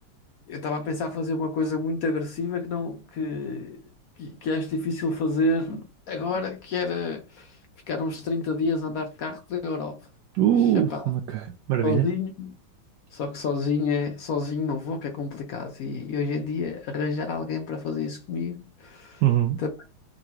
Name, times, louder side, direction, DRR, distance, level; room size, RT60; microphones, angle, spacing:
voice 1, 0.5-3.8 4.2-7.6 7.9-10.0 10.6-11.1 11.8-12.6 13.1-19.2 19.6-19.9, left 3 dB, 75° left, 0.8 m, -29 dB
voice 2, 10.4-12.1 19.2-19.6, right 11 dB, 70° right, 1.0 m, -22 dB
3.8 x 3.0 x 4.5 m
omnidirectional pair, 2.2 m